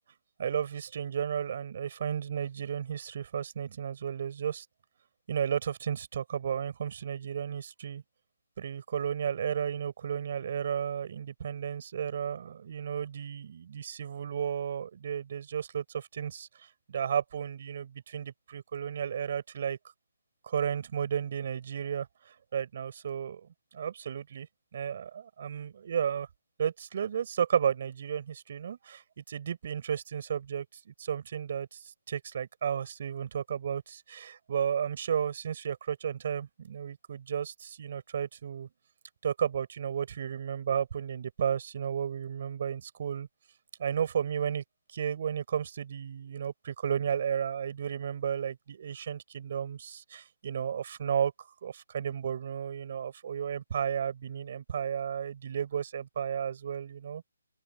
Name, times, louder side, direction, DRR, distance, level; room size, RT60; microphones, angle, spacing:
voice 1, 0.4-4.7 5.3-8.0 8.6-16.5 16.9-19.8 20.4-22.1 22.5-24.5 24.7-26.3 26.6-29.0 29.3-31.8 32.1-38.7 39.2-43.3 43.8-44.6 44.9-51.3 51.6-57.2, right 8 dB, 45° right, 7.1 m, -33 dB
open air
hypercardioid pair, 155°, 0 cm